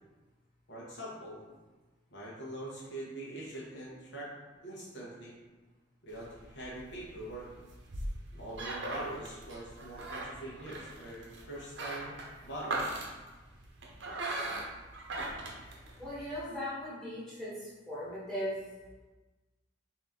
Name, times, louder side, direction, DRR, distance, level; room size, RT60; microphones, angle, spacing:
voice 1, 0.7-1.4 2.1-4.3 4.6-5.4 6.0-7.5 8.3-12.1 12.4-13.1, right 1 dB, 65° left, -6 dB, 1.1 m, -43 dB
sound 1, 6.1-16.4, right 2 dB, 70° right, 0.7 m, -40 dB
voice 2, 16.0-18.6, equal, 5° left, -11 dB, 1.4 m, -38 dB
4.1 x 2.8 x 3.6 m, 1.2 s
head